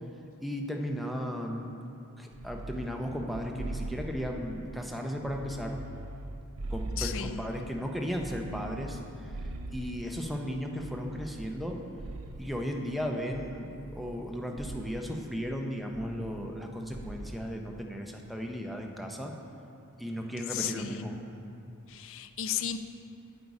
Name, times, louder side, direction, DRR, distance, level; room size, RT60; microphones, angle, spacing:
voice 1, 0.4-1.7 2.2-5.8 6.7-11.8 12.4-19.3 20.0-21.2, equal, ahead, 1 dB, 0.6 m, -35 dB
sound 1, 2.3-4.8 5.2-7.7 8.1-10.3 10.8-12.7 13.3-14.3 14.6-15.1 15.9-16.7 16.9-17.4, right 2 dB, 80° right, 0.5 m, -41 dB
voice 2, 7.0-7.4 20.5-21.1 21.9-22.8, left 9 dB, 60° left, 9 dB, 0.4 m, -34 dB
sound 2, 8.4-11.6, left 6 dB, 90° left, 2.2 m, -53 dB
8.4 x 8.0 x 4.8 m, 2.7 s
head